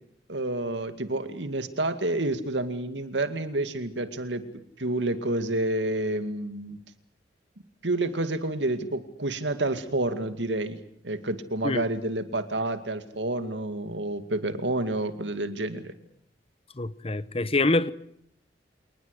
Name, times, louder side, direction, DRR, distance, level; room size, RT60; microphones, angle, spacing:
voice 1, 0.3-4.4 4.8-6.8 7.8-10.8 11.0-15.9, right 2 dB, 90° right, 2.3 m, -29 dB
voice 2, 16.8-17.9, left 2 dB, 35° left, 1.0 m, -25 dB
27.0 x 19.5 x 8.3 m
head